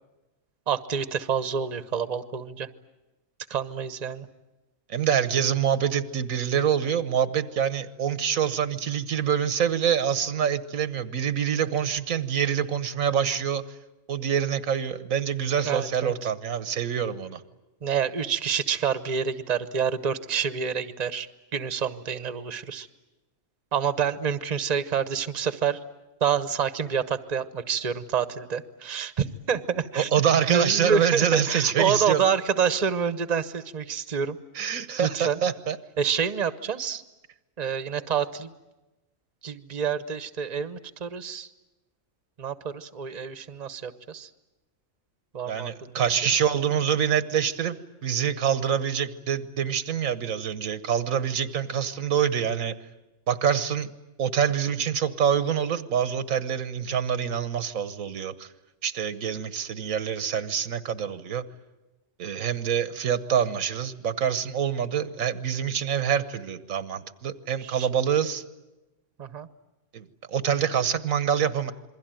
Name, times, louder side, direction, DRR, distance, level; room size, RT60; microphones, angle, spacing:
voice 1, 0.7-2.7 3.5-4.3 15.6-16.3 17.8-22.9 23.7-25.8 26.2-30.1 30.5-34.4 35.0-35.4 36.0-37.0 37.6-38.5 39.4-41.5 42.4-44.3 45.3-46.0 67.6-67.9 69.2-69.5, right 7 dB, 35° right, 13 dB, 1.0 m, -28 dB
voice 2, 4.9-13.6 14.1-17.4 30.0-32.2 34.5-35.8 45.5-47.8 48.0-52.7 53.3-53.9 54.2-58.5 58.8-61.4 62.2-68.4 69.9-71.7, right 8 dB, 85° right, 14 dB, 1.5 m, -26 dB
27.5 x 22.0 x 9.1 m, 1.0 s
omnidirectional pair, 1.4 m